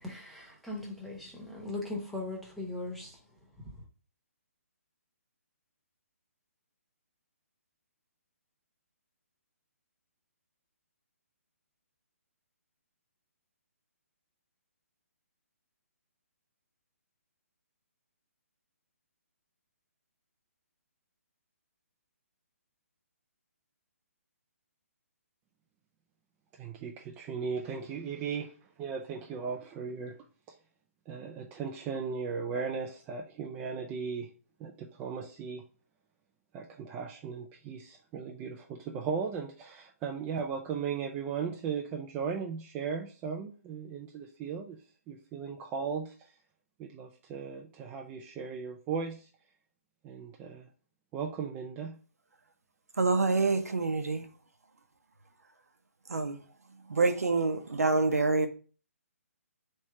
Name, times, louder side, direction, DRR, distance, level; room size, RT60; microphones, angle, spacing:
voice 1, 0.0-3.2, left 2 dB, ahead, 0.9 m, -39 dB
voice 2, 26.6-28.5 28.8-30.1 31.1-34.3 34.6-35.6 36.5-44.8 45.1-46.3 46.8-49.3 50.0-50.7 51.1-51.9, right 6 dB, 15° right, 0.3 m, -37 dB
voice 3, 53.0-54.3 56.1-56.4 56.9-58.5, right 3 dB, 90° right, 0.7 m, -26 dB
3.2 x 3.0 x 4.6 m
hypercardioid pair, 145°, 8 cm